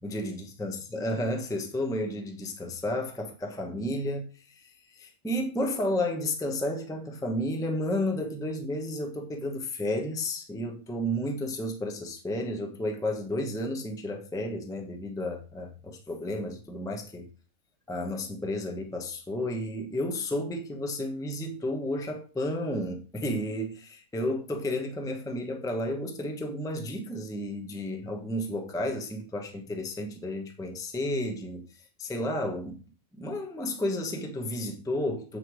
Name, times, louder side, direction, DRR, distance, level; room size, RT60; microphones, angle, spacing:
voice 1, 0.0-17.3 17.9-31.6 32.0-32.8 33.1-35.4, left 1 dB, 5° left, 0.8 m, -32 dB
7.7 x 5.0 x 4.7 m
omnidirectional pair, 1.6 m